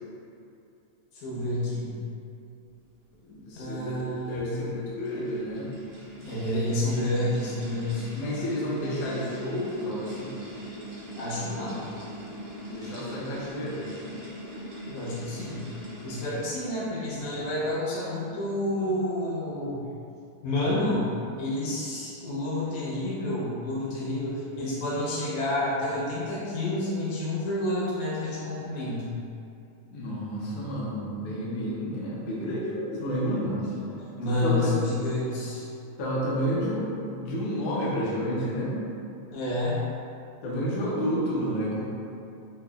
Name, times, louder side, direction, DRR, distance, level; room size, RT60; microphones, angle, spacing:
voice 1, 1.1-1.9 3.6-4.6 6.2-8.1 11.1-11.8 14.9-15.7 16.0-19.8 20.4-21.0 21.4-29.2 33.2-33.6 33.9-35.6 39.3-39.8, left 1 dB, 90° left, -8 dB, 2.4 m, -29 dB
voice 2, 3.2-5.7 8.1-10.4 12.7-13.8 29.9-33.6 34.2-34.8 36.0-36.8 37.1-38.7 40.4-41.8, equal, 70° left, -7 dB, 1.6 m, -30 dB
sound 1, 4.6-16.7, equal, 80° right, 2.2 m, -42 dB
5.4 x 2.2 x 2.3 m, 2.6 s
omnidirectional pair, 3.3 m